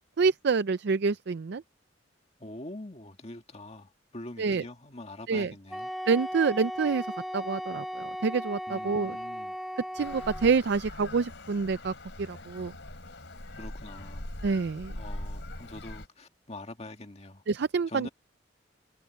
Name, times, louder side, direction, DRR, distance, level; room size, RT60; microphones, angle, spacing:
voice 1, 0.2-1.6 4.4-4.6 5.3-5.5 6.1-7.1 7.3-9.2 9.9-11.9 12.2-12.7 14.4-15.0 17.5-18.1, right 5 dB, 60° right, 0.5 m, -27 dB
voice 2, 2.4-5.9 8.7-9.6 13.6-14.3 15.0-17.4 17.9-18.1, left 1 dB, 35° left, 2.1 m, -44 dB
Wind instrument woodwind instrument, 5.7-10.6, equal, ahead, 3.0 m, -37 dB
Traffic noise roadway noise, 10.0-16.1, left 1 dB, 65° left, 4.7 m, -42 dB
head